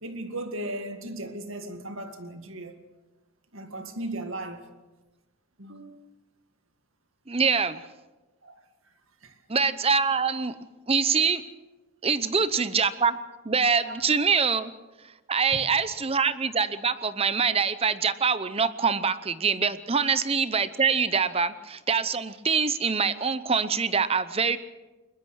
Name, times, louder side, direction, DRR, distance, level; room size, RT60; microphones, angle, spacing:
voice 1, 0.0-2.7 3.5-4.7 5.6-6.1 8.4-8.6 9.2-9.3 13.8-14.0 15.5-15.7, right 1 dB, 60° right, 2.0 m, -37 dB
voice 2, 7.3-7.9 9.5-10.6 10.9-11.4 12.0-13.2 13.4-14.7 15.3-24.6, right 5 dB, 25° right, 0.7 m, -24 dB
22.5 x 21.0 x 6.4 m
head